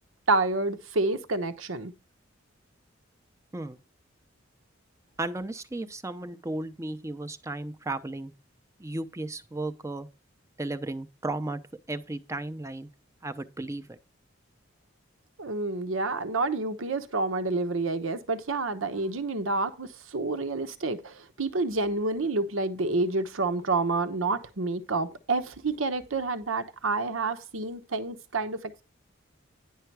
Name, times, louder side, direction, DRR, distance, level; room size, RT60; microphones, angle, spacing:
voice 1, 0.3-1.9 15.4-28.8, right 3 dB, 80° right, 1.0 m, -29 dB
voice 2, 5.2-8.3 8.8-10.1 10.6-11.6 11.9-12.9 13.2-14.0, right 2 dB, 15° right, 0.6 m, -34 dB
10.5 x 5.6 x 4.7 m
head